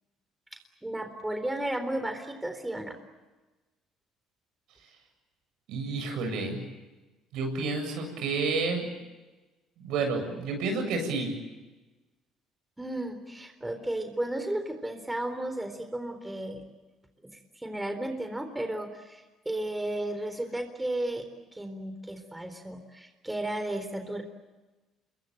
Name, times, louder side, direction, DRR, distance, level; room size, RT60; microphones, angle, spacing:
voice 1, 0.8-2.9 12.8-16.6 17.5-21.3 21.5-24.2, right 1 dB, 10° right, 7 dB, 3.8 m, -34 dB
voice 2, 5.7-6.6 7.3-8.9 9.8-11.3, right 3 dB, 75° right, 4 dB, 7.9 m, -30 dB
27.0 x 22.5 x 9.0 m, 1.2 s
supercardioid pair, 85°, 0 cm